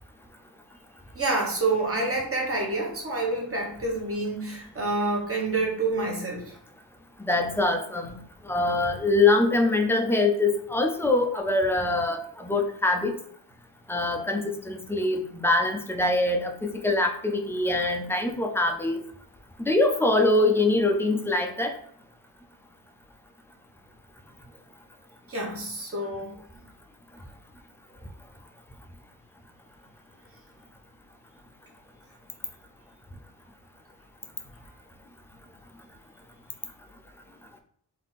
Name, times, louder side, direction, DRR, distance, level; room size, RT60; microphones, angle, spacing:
voice 1, 1.1-6.5 25.3-26.3, right 2 dB, 30° right, -1 dB, 1.1 m, -28 dB
voice 2, 7.2-8.2 8.5-13.1 13.9-19.0 19.7-21.7, left 2 dB, 5° left, 3 dB, 0.4 m, -24 dB
3.6 x 2.7 x 3.9 m, 0.62 s
wide cardioid pair, 155°, 46 cm